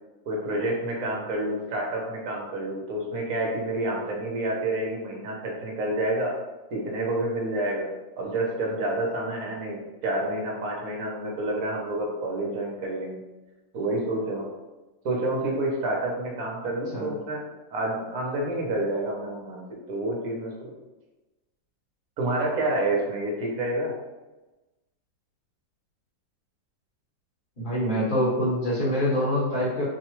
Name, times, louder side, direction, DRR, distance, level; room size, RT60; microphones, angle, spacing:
voice 1, 0.3-6.3 6.7-7.9 8.2-13.2 13.7-14.5 15.0-17.4 17.7-20.7 22.2-23.9, right 1 dB, 55° right, -1 dB, 1.2 m, -28 dB
voice 2, 27.6-29.8, equal, 30° left, -7 dB, 1.3 m, -25 dB
4.7 x 2.4 x 3.1 m, 1.1 s
omnidirectional pair, 2.0 m